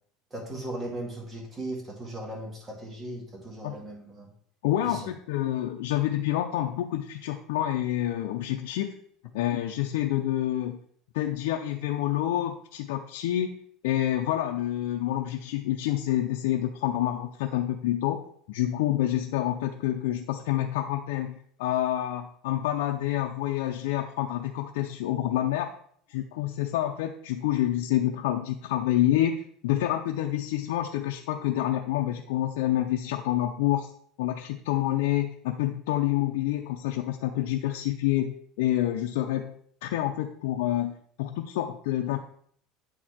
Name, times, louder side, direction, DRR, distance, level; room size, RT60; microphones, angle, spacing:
voice 1, 0.3-4.3 4.8-5.1, right 1 dB, 20° right, -1 dB, 2.2 m, -37 dB
voice 2, 4.6-9.0 9.3-10.8 11.1-13.6 13.8-18.2 18.5-25.7 26.1-33.9 34.2-42.2, left 13 dB, 90° left, 3 dB, 0.5 m, -28 dB
8.7 x 4.6 x 4.3 m, 0.63 s
cardioid pair, 140°, 0 cm